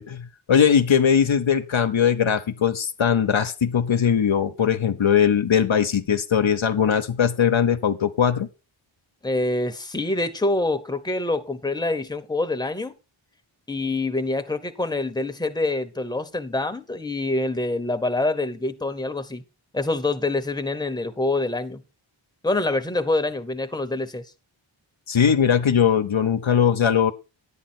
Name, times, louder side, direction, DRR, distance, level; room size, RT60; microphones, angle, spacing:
voice 1, 0.0-8.5 25.1-27.1, left 8 dB, 75° left, 0.9 m, -20 dB
voice 2, 9.2-12.9 13.7-19.4 19.7-21.8 22.4-24.3, left 2 dB, 10° left, 0.9 m, -26 dB
10.0 x 8.7 x 4.4 m
wide cardioid pair, 55°, 48 cm